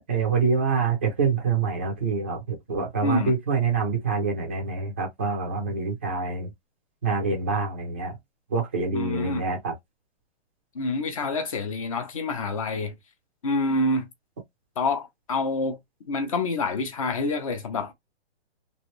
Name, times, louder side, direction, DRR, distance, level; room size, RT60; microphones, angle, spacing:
voice 1, 0.1-6.5 7.0-8.2 8.5-9.7, right 5 dB, 10° right, 0.5 m, -26 dB
voice 2, 8.9-9.4 10.7-12.9 13.4-14.1 14.8-15.8 16.0-17.9, left 3 dB, 30° left, 0.7 m, -27 dB
3.1 x 2.6 x 3.1 m
hypercardioid pair, 175°, 33 cm